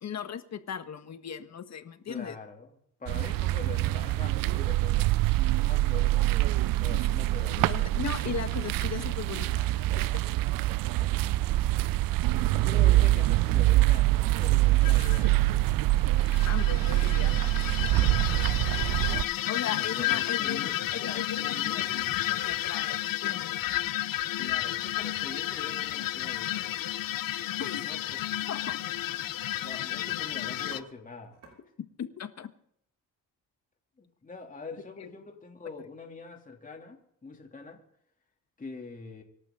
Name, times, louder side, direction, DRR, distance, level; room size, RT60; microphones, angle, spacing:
voice 1, 0.0-2.4 6.9-7.0 7.6-10.2 16.5-17.4 17.8-18.2 19.5-21.9 22.3-23.6 27.6-27.9 28.5-28.8 32.0-32.5 35.0-35.1, left 7 dB, 55° left, 9 dB, 1.5 m, -38 dB
voice 2, 2.1-5.1 5.5-7.9 11.0-11.2 12.2-15.6 19.7-22.7 24.4-26.8 27.8-28.2 29.6-31.6 34.0-37.8 38.6-39.2, left 4 dB, 25° left, 2 dB, 3.0 m, -44 dB
sound 1, 3.1-19.2, right 17 dB, 85° right, 0.5 m, -25 dB
sound 2, 14.8-15.3 16.2-30.8, left 14 dB, 85° left, 0.8 m, -32 dB
sound 3, 23.0-23.1 23.4-24.8 26.5-26.7 28.1-28.3 28.6-29.8 30.2-30.3 30.5-30.8 31.3-31.5, right 3 dB, 50° right, 6.2 m, -56 dB
26.0 x 12.0 x 3.9 m, 0.70 s
cardioid pair, 110°, 33 cm